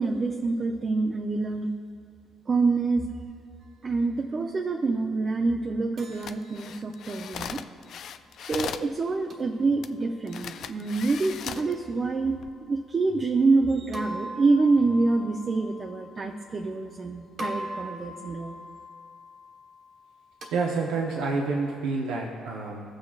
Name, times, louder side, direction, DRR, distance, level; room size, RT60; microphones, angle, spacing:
voice 1, 0.0-1.7 2.5-3.1 3.8-7.6 8.4-18.6, right 3 dB, 40° right, 2 dB, 0.6 m, -26 dB
sound 1, 6.0-8.1 9.3-10.3 11.6-12.8 13.9-17.0 17.4-21.8, equal, 60° right, 1.4 m, -43 dB
sound 2, 6.1-8.9 9.8-9.9 10.3-11.7 12.3-12.5, left 8 dB, 65° left, 0.3 m, -38 dB
voice 2, 20.5-22.8, right 3 dB, 85° right, -2 dB, 0.8 m, -28 dB
16.5 x 6.4 x 2.4 m, 2.3 s
supercardioid pair, 65°, 0 cm